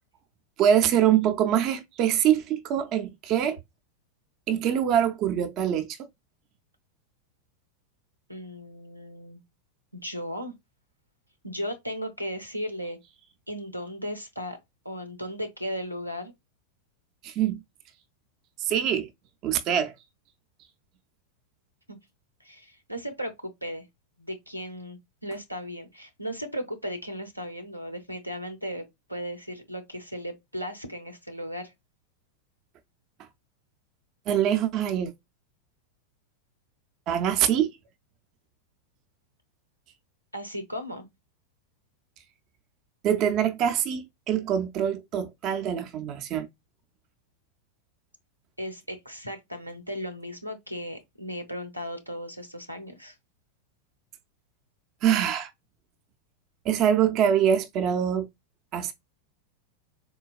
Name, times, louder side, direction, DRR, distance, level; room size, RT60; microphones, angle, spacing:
voice 1, 0.6-3.6 4.5-6.0 17.2-17.6 18.6-19.1 19.4-19.9 34.3-35.1 37.1-37.7 43.0-46.5 55.0-55.5 56.6-58.3 58.7-58.9, right 9 dB, 35° right, 0.4 m, -24 dB
voice 2, 8.3-9.4 9.9-10.5 11.4-13.0 13.5-14.6 14.8-16.3 21.9-22.0 22.4-23.8 24.2-31.7 40.3-41.1 48.6-53.2, equal, 90° right, 0.6 m, -36 dB
3.9 x 2.2 x 2.3 m
figure-of-eight pair, 90°, 0 cm